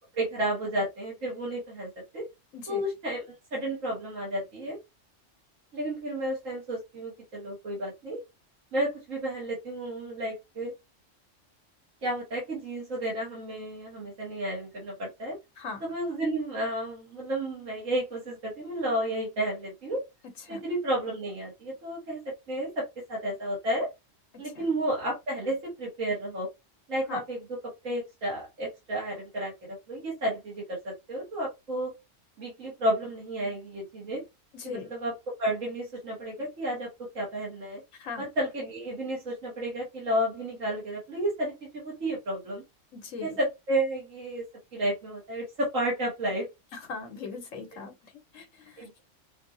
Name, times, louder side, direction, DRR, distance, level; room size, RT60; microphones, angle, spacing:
voice 1, 0.1-2.3 2.7-4.8 5.7-8.2 8.7-10.7 12.0-15.4 15.8-20.0 20.5-23.9 24.4-26.5 26.9-27.4 27.8-31.9 32.4-34.2 34.6-35.1 35.4-36.9 37.1-37.8 38.2-42.6 43.2-44.5 44.7-46.5 48.8-49.0, right 1 dB, 85° right, 2.2 m, -32 dB
voice 2, 34.5-34.9 37.9-38.3 42.9-43.4 46.7-48.9, left 5 dB, 85° left, 1.3 m, -40 dB
5.8 x 2.7 x 2.7 m
omnidirectional pair, 1.3 m